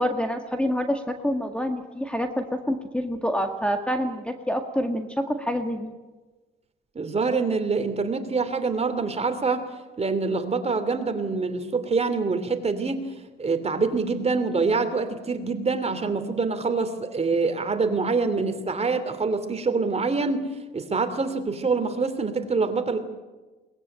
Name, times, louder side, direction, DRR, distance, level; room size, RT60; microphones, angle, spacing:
voice 1, 0.0-5.9, equal, 5° left, 6 dB, 1.8 m, -27 dB
voice 2, 6.9-9.6 10.0-13.1 13.4-20.5 20.7-23.0, right 4 dB, 30° right, 8 dB, 2.9 m, -25 dB
22.0 x 19.5 x 8.9 m, 1.2 s
cardioid pair, 90°, 20 cm